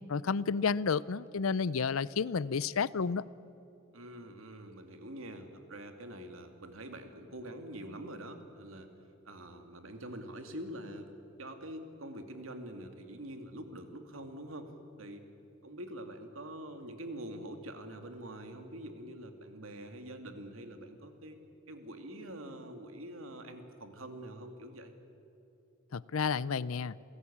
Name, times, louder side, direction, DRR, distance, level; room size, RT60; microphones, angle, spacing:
voice 1, 0.1-3.2 25.9-27.0, left 5 dB, 80° left, 0.6 m, -31 dB
voice 2, 3.9-8.9 9.2-11.1 11.4-14.7 15.0-15.2 15.6-21.4 21.7-24.9, right 1 dB, 75° right, 2.4 m, -45 dB
28.0 x 17.5 x 8.7 m
head